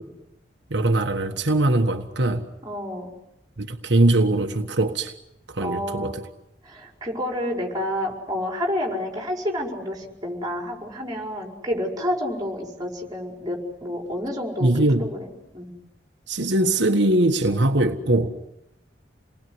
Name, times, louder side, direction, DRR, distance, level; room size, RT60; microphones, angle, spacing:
voice 1, 0.7-2.5 3.6-5.1 5.5-6.2 14.6-15.1 16.3-18.4, right 1 dB, 75° right, 1.5 m, -21 dB
voice 2, 2.6-3.1 5.6-6.2 6.6-14.7 15.0-15.3 15.5-15.7, left 1 dB, 20° right, 5.1 m, -29 dB
29.0 x 20.0 x 9.5 m
head